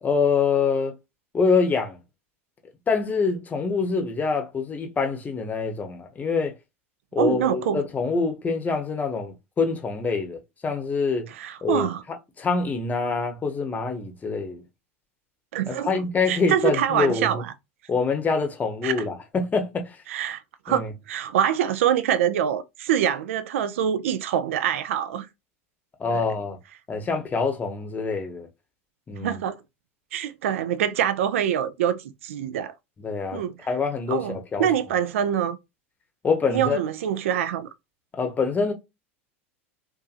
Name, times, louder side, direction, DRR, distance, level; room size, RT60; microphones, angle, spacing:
voice 1, 0.0-0.9 1.3-2.0 2.9-6.5 7.1-11.3 11.6-11.9 12.4-14.6 15.7-17.4 17.9-20.0 20.7-20.9 26.0-26.6 26.9-28.5 29.1-29.4 33.0-33.4 33.7-34.7 36.2-36.8 38.1-38.7, left 4 dB, 20° left, 0.8 m, -25 dB
voice 2, 7.2-7.8 11.3-12.0 15.5-15.9 16.3-17.5 18.8-18.9 20.1-25.3 26.1-26.2 29.2-29.6 30.1-32.7 33.3-33.7 34.1-35.6 36.5-37.7, right 9 dB, 75° right, 0.4 m, -25 dB
2.6 x 2.5 x 2.4 m
hypercardioid pair, 90°, 7 cm